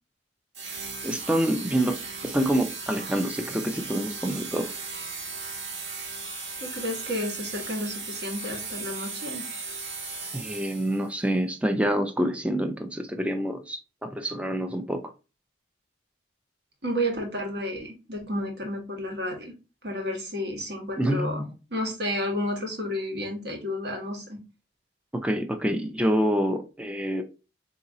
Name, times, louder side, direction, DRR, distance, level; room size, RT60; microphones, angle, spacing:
sound 1, 0.5-11.1, right 4 dB, 75° right, 1.5 m, -37 dB
voice 1, 1.0-2.0 2.2-4.7 10.3-15.0 21.0-21.5 25.1-27.2, right 1 dB, 5° right, 6 dB, 0.5 m, -27 dB
voice 2, 6.6-9.5 16.8-19.5 19.8-21.4 21.7-24.4, equal, 55° right, 2 dB, 1.4 m, -31 dB
4.0 x 2.8 x 3.6 m, 0.30 s
head